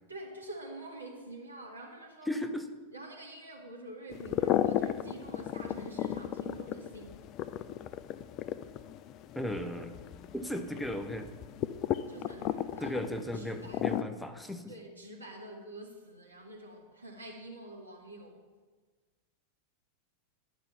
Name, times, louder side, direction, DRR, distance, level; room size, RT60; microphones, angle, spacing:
voice 1, 0.1-2.3 2.9-7.2 12.0-13.0 13.3-14.0 14.7-18.4, right 1 dB, 80° right, -1 dB, 1.5 m, -46 dB
voice 2, 2.3-2.6 9.4-9.9 10.3-11.3 12.8-14.7, equal, 5° left, 7 dB, 0.7 m, -36 dB
sound 1, 4.1-14.0, left 11 dB, 35° left, 0.3 m, -35 dB
10.5 x 5.2 x 5.7 m, 1.3 s
figure-of-eight pair, 90°, 0 cm